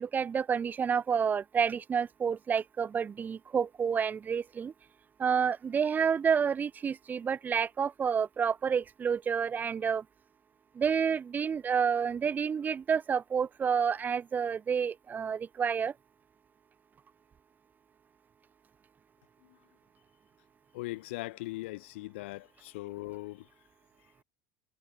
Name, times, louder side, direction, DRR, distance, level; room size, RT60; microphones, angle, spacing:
voice 1, 0.0-4.7 5.2-10.0 10.8-15.9, right 7 dB, 25° right, 0.7 m, -29 dB
voice 2, 20.7-23.5, left 20 dB, 75° left, 1.6 m, -40 dB
hypercardioid pair, 90°, 6 cm